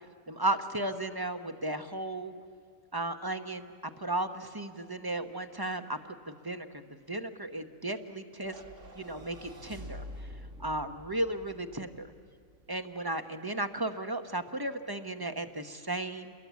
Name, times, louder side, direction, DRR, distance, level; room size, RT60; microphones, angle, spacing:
voice 1, 0.3-2.3 2.9-3.7 4.0-6.0 6.3-6.7 7.1-8.5 8.9-10.3 10.6-12.1 12.7-16.3, right 2 dB, 20° right, 7 dB, 0.8 m, -34 dB
sound 1, 8.4-12.8, equal, 65° right, 2.2 m, -47 dB
29.0 x 22.0 x 8.3 m, 2.2 s
omnidirectional pair, 1.4 m